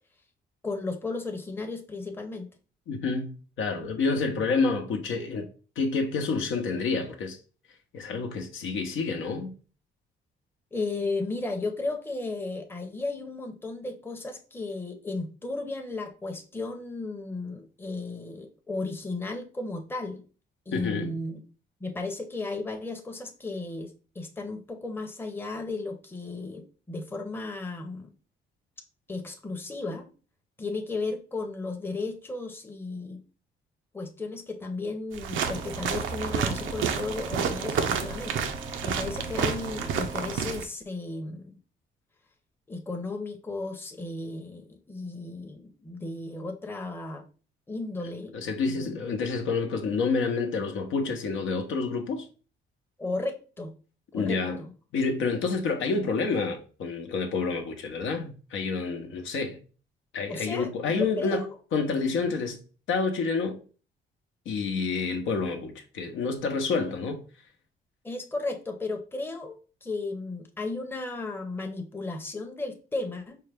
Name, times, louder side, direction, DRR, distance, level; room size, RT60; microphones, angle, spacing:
voice 1, 0.6-2.5 10.7-20.2 20.7-21.4 21.8-28.1 29.1-30.1 30.6-33.2 33.9-38.4 38.8-41.5 42.7-47.2 47.7-48.3 48.7-49.0 53.0-53.7 54.1-54.7 60.3-61.5 68.0-73.4, left 3 dB, 10° left, 0.7 m, -34 dB
voice 2, 2.9-5.5 5.8-7.4 7.9-9.5 20.7-21.2 48.3-52.3 54.1-54.6 54.9-59.6 60.1-61.4 61.7-62.6 62.9-63.6 64.5-67.2, left 4 dB, 75° left, 0.8 m, -28 dB
sound 1, 35.1-40.7, right 6 dB, 80° right, 0.6 m, -30 dB
sound 2, 35.4-40.4, right 3 dB, 20° right, 0.3 m, -42 dB
4.7 x 2.2 x 3.3 m
cardioid pair, 90°, 20 cm